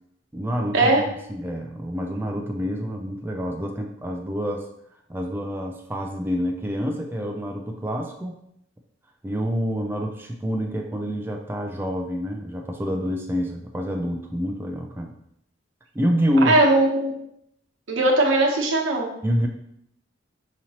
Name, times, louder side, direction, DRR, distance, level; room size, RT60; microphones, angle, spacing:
voice 1, 0.3-4.7 5.1-8.4 9.2-15.1 15.9-16.6 19.2-19.5, equal, 10° right, 2 dB, 0.3 m, -27 dB
voice 2, 16.4-17.1 17.9-19.1, right 2 dB, 90° right, -1 dB, 0.9 m, -19 dB
5.0 x 2.8 x 2.8 m, 0.75 s
head